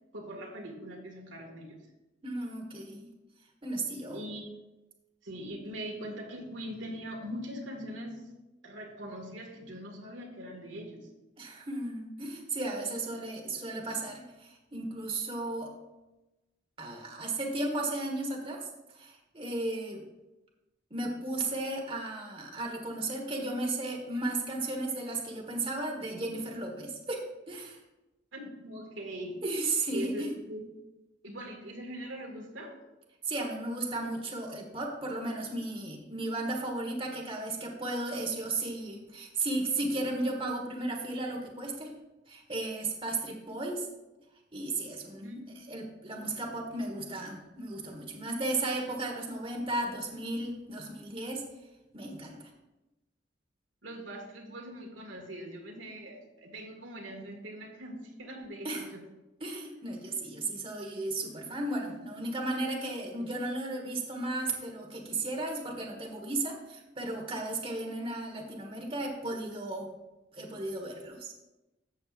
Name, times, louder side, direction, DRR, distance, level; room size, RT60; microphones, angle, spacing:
voice 1, 0.1-1.8 4.1-4.6 5.2-8.3 8.6-11.1 28.3-29.4 29.9-30.7 31.2-32.8 45.2-45.4 53.8-59.0, equal, 90° right, 0 dB, 2.0 m, -41 dB
voice 2, 2.2-3.1 3.6-4.2 11.4-15.7 16.8-18.7 18.9-20.0 20.9-27.8 29.4-30.3 33.3-41.9 42.3-43.9 44.5-45.4 45.7-51.4 51.9-52.4 58.6-58.9 59.4-69.9 70.3-71.3, right 2 dB, 30° right, 0 dB, 1.4 m, -35 dB
13.0 x 7.6 x 2.5 m, 1.0 s
head